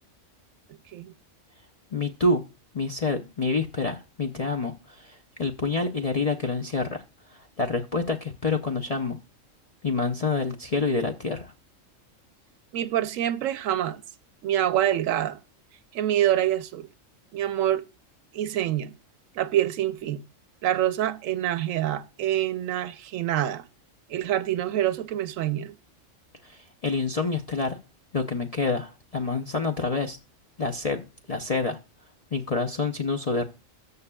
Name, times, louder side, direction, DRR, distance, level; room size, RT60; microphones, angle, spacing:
voice 1, 1.9-2.4 2.7-9.2 9.8-11.5 26.4-27.8 28.1-30.2 30.6-31.0 31.3-31.8 32.3-33.4, left 3 dB, 45° left, 0.5 m, -27 dB
voice 2, 12.7-14.0 14.4-15.4 15.9-16.9 17.3-17.8 18.3-18.9 19.4-20.2 20.6-23.6 24.1-25.7, right 12 dB, 80° right, 1.0 m, -26 dB
13.5 x 7.0 x 2.3 m
omnidirectional pair, 1.4 m